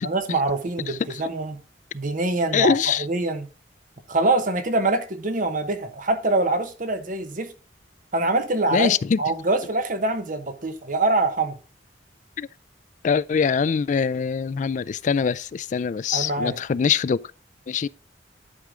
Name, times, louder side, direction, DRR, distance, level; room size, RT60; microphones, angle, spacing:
voice 1, 0.0-1.6 1.9-3.5 4.1-7.5 8.1-8.9 9.2-11.5 16.1-16.6, right 2 dB, 50° right, 1.1 m, -24 dB
voice 2, 0.9-1.2 2.5-3.1 8.7-9.2 12.4-12.5 13.0-17.2 17.7-17.9, left 6 dB, 45° left, 0.3 m, -23 dB
11.0 x 4.9 x 3.7 m
head